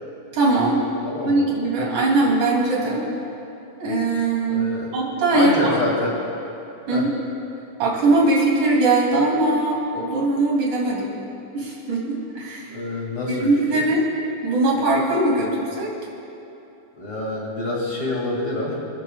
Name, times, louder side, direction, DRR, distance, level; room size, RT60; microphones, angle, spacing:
voice 1, 0.3-0.8 1.2-3.0 3.8-5.8 6.9-7.1 7.8-11.1 11.5-12.8 13.3-14.1 14.4-15.9, right 2 dB, 40° right, -4 dB, 3.8 m, -21 dB
voice 2, 1.0-1.4 4.5-4.9 5.3-6.2 6.9-7.1 12.7-13.8 17.0-18.8, left 2 dB, 40° left, -3 dB, 2.0 m, -26 dB
29.5 x 14.0 x 2.4 m, 2.8 s
omnidirectional pair, 6.0 m